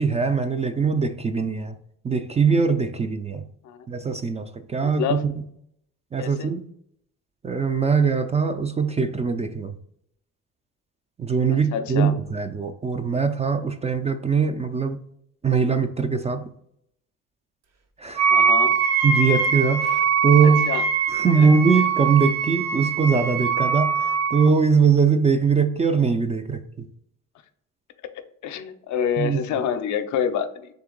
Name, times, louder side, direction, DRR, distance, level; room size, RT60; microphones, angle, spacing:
voice 1, 0.0-1.8 2.0-3.4 3.9-4.4 4.7-5.3 6.1-6.6 7.4-9.7 11.2-15.0 15.4-16.5 18.0-18.3 19.0-20.7 21.1-26.9 29.2-29.4, right 5 dB, 20° right, 0.3 m, -21 dB
voice 2, 4.8-5.2 6.2-6.5 11.7-12.1 18.3-18.7 20.4-20.8 21.4-21.5 28.4-30.7, left 8 dB, 70° left, 0.5 m, -27 dB
Wind instrument woodwind instrument, 18.2-24.5, right 6 dB, 60° right, 0.8 m, -22 dB
3.7 x 2.8 x 3.8 m
cardioid pair, 90°, 30 cm